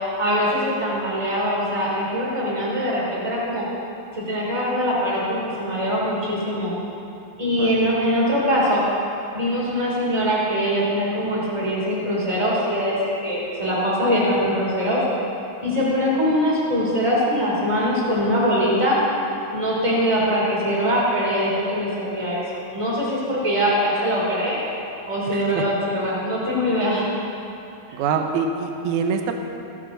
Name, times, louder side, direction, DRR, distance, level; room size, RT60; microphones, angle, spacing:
voice 1, 0.2-3.7 4.1-6.7 7.4-8.8 9.3-15.0 15.6-19.0 19.5-22.4 22.7-24.6 25.1-27.1, equal, 10° right, -6 dB, 2.8 m, -22 dB
voice 2, 25.2-25.7 27.9-29.3, right 5 dB, 85° right, 4 dB, 1.7 m, -25 dB
16.0 x 12.5 x 4.0 m, 2.8 s
omnidirectional pair, 4.6 m